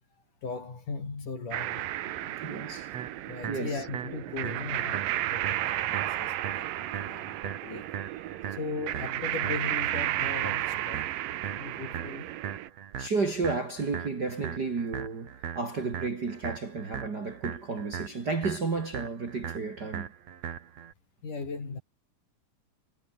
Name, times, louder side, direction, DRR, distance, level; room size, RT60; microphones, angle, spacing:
voice 1, 0.4-2.4 3.3-7.9 8.5-12.3 21.2-21.8, left 4 dB, 60° left, 7.9 m, -38 dB
sound 1, 1.5-12.7, right 14 dB, 75° right, 2.7 m, -33 dB
voice 2, 2.4-2.9 3.5-3.8 13.0-20.1, right 4 dB, 30° right, 2.4 m, -32 dB
sound 2, 2.9-20.9, right 9 dB, 50° right, 2.7 m, -40 dB
omnidirectional pair, 4.1 m